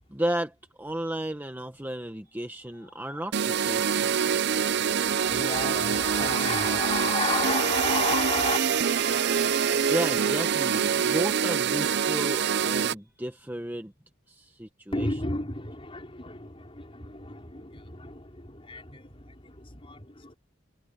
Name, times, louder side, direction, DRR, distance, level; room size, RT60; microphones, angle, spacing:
voice 1, 0.1-4.5 9.9-13.9 14.3-15.1, right 1 dB, 10° right, 1.0 m, -33 dB
voice 2, 2.8-3.2 5.0-8.6 14.9-20.3, left 3 dB, 25° left, 4.7 m, -33 dB
sound 1, 3.3-12.9, right 7 dB, 55° right, 0.5 m, -25 dB
head